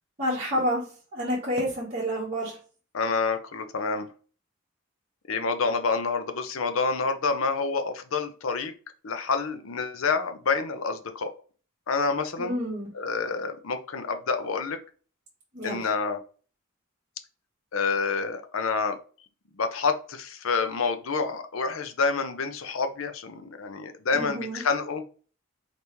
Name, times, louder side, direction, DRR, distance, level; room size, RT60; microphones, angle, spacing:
voice 1, 0.2-0.8 1.1-2.6 12.4-12.9 15.5-15.8 24.1-24.6, equal, 35° right, -7 dB, 1.3 m, -29 dB
voice 2, 2.9-4.1 5.3-8.7 9.0-11.3 11.9-12.6 12.9-14.8 15.6-16.2 17.7-19.0 19.6-25.0, left 4 dB, 75° left, 8 dB, 0.6 m, -28 dB
4.1 x 3.4 x 3.0 m, 0.39 s
head